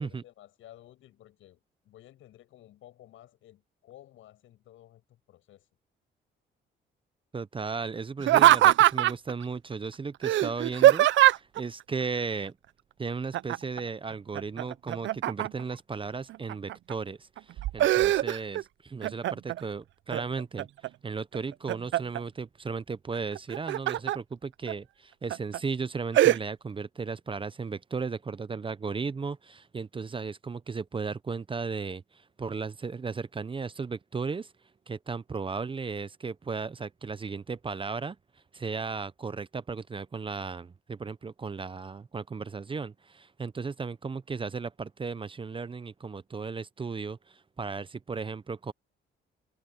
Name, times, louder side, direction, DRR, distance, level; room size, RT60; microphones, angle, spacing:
voice 1, 0.0-5.7, left 13 dB, 80° left, 7.8 m, -54 dB
voice 2, 7.3-12.5 13.0-34.5 34.9-38.2 38.5-48.7, right 4 dB, 25° right, 0.7 m, -35 dB
Laughter, 8.2-9.3 10.2-11.6 13.3-13.8 14.1-15.7 16.3-16.9 17.4-18.6 19.0-19.6 20.1-20.9 21.3-22.2 23.4-24.2 24.7-24.8 25.3-25.6 26.1-26.4, right 14 dB, 70° right, 0.5 m, -22 dB
cardioid pair, 90°, 20 cm